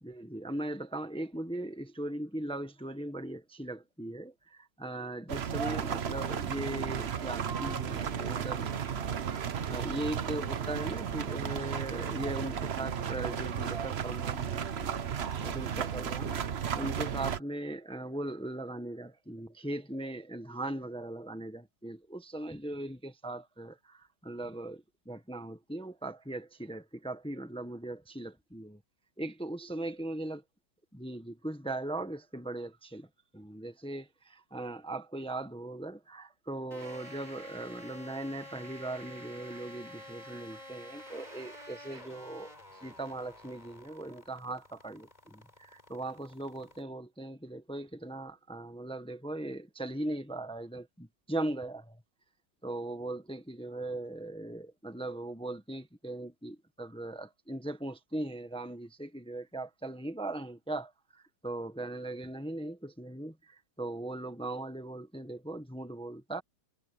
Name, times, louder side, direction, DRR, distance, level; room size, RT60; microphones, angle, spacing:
voice 1, 0.0-8.7 9.7-14.9 15.4-16.4 16.7-28.8 29.2-30.4 30.9-33.1 33.3-52.0 52.6-66.4, right 1 dB, 5° left, 1.0 m, -39 dB
sound 1, 5.3-17.4, right 8 dB, 45° right, 0.9 m, -34 dB
sound 2, 36.7-46.8, left 1 dB, 20° left, 4.7 m, -50 dB
sound 3, 36.8-42.0, right 5 dB, 60° right, 2.4 m, -54 dB
omnidirectional pair, 1.9 m